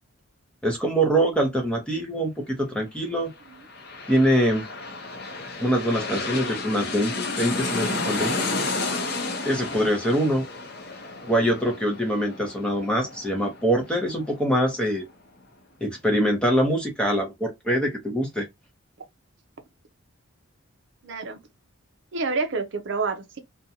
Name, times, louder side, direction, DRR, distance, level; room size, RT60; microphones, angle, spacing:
voice 1, 0.6-3.3 4.1-4.6 5.6-8.4 9.5-10.4 11.2-15.0 15.8-18.5, equal, 5° left, 0.7 m, -24 dB
sound 1, 3.4-14.7 15.1-15.2, left 3 dB, 50° left, 0.6 m, -32 dB
voice 2, 21.0-21.4 22.1-23.4, right 4 dB, 55° right, 0.5 m, -28 dB
2.5 x 2.2 x 2.8 m
head